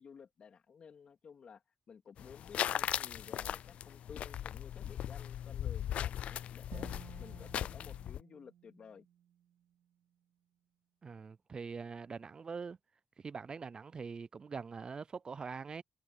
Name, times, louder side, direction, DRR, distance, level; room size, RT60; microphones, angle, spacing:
voice 1, 0.0-1.6 1.9-6.9 7.2-9.1, left 6 dB, 60° left, 3.2 m, -54 dB
sound 1, 2.2-8.2, left 10 dB, 80° left, 0.3 m, -38 dB
Bowed string instrument, 6.7-9.8, right 10 dB, 90° right, 2.8 m, -55 dB
voice 2, 11.0-12.8 13.2-15.8, right 5 dB, 40° right, 0.3 m, -43 dB
cardioid pair, 85°, 2 cm